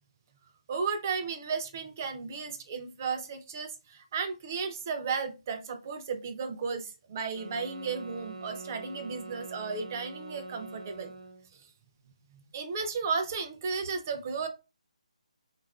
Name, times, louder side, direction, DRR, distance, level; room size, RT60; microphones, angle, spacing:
voice 1, 0.7-11.1 11.5-11.7 12.3-14.5, right 5 dB, 25° right, 7 dB, 0.3 m, -34 dB
sound 1, 7.3-11.5, right 3 dB, 60° right, 0.7 m, -44 dB
3.4 x 2.3 x 2.3 m, 0.28 s
hypercardioid pair, 170°, 4 cm